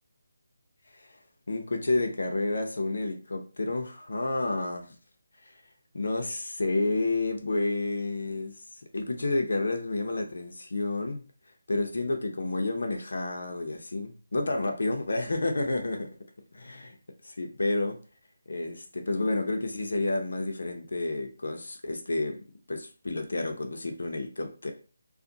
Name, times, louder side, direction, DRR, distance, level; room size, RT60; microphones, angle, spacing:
voice 1, 1.5-4.9 5.4-5.5 5.9-8.5 8.9-11.2 11.7-16.1 16.5-17.0 17.2-18.0 18.5-22.4 22.7-24.7, left 2 dB, 65° left, 4 dB, 0.6 m, -30 dB
2.5 x 2.5 x 3.8 m, 0.37 s
hypercardioid pair, 180°, 0 cm